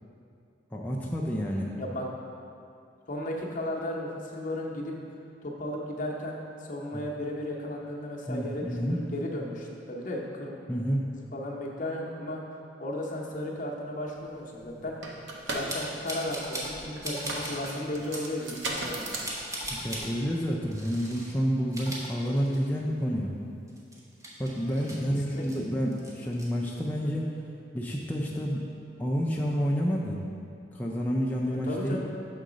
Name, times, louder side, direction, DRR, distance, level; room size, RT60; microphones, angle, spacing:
voice 1, 0.7-1.7 6.9-7.0 8.3-9.0 10.7-11.0 19.7-23.3 24.4-27.3 27.7-28.6 29.0-30.2 30.7-32.0, equal, 10° left, -4 dB, 0.4 m, -29 dB
voice 2, 1.7-2.1 3.1-4.9 5.4-10.6 11.1-15.2 15.5-19.1 25.3-25.6 31.5-32.0, left 1 dB, 45° left, -2 dB, 0.8 m, -35 dB
sound 1, 14.3-14.4 14.6-20.2, right 2 dB, 80° right, 0.8 m, -37 dB
sound 2, 15.7-16.8 17.0-17.8 18.1-18.3 18.7-20.1 20.7-21.3 21.6-22.8 23.1-23.2 23.7-25.6 25.9-26.5, right 1 dB, 20° right, 0.9 m, -38 dB
6.5 x 3.8 x 5.0 m, 2.5 s
head